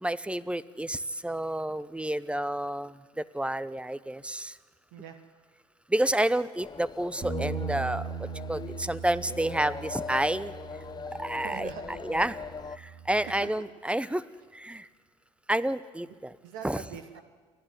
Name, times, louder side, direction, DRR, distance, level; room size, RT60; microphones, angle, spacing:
voice 1, 0.0-4.6 5.9-10.5 11.1-11.7 12.0-12.4 12.8-14.2 14.5-14.9 15.5-16.3 16.6-16.8, right 1 dB, 5° right, 17 dB, 0.9 m, -30 dB
voice 2, 4.9-5.2 11.4-12.2 13.1-13.5 16.0-16.1 16.4-17.2, right 8 dB, 75° right, 7 dB, 1.5 m, -43 dB
sound 1, 6.6-12.8, left 5 dB, 25° left, 0.7 m, -41 dB
Bass guitar, 7.2-13.5, right 5 dB, 45° right, 3.0 m, -39 dB
29.0 x 11.0 x 9.7 m, 1.4 s
hypercardioid pair, 60°, 16 cm